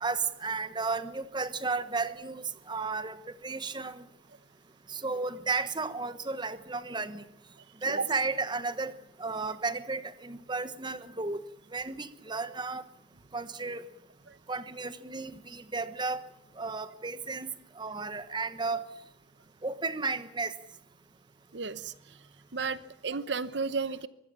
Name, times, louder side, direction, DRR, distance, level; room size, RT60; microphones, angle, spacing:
voice 1, 0.0-4.0 4.9-7.2 7.8-8.9 9.2-11.4 11.7-12.8 13.3-13.8 14.5-16.2 16.6-17.5 17.8-18.8 19.6-20.5, right 4 dB, 25° right, 13 dB, 1.3 m, -33 dB
voice 2, 21.5-22.2 22.5-24.1, right 4 dB, 65° right, 15 dB, 1.0 m, -33 dB
24.5 x 21.5 x 7.1 m, 0.75 s
head